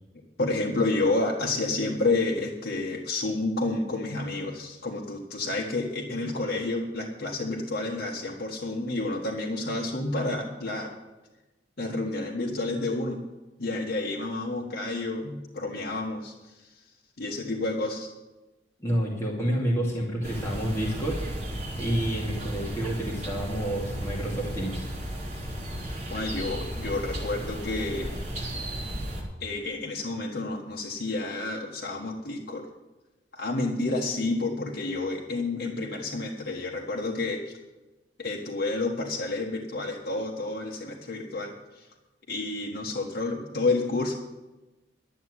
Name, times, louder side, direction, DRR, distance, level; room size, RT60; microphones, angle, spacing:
voice 1, 0.4-10.9 11.8-13.2 13.6-16.3 17.2-18.1 26.1-28.1 29.4-32.7 33.3-37.5 38.2-41.9 42.3-44.1, left 2 dB, 60° left, -2 dB, 1.4 m, -30 dB
voice 2, 18.8-21.2 21.8-24.8, right 1 dB, 15° left, -4 dB, 2.4 m, -29 dB
sound 1, 20.2-29.2, equal, 40° right, 3.6 m, -34 dB
12.0 x 7.2 x 9.6 m, 1.1 s
head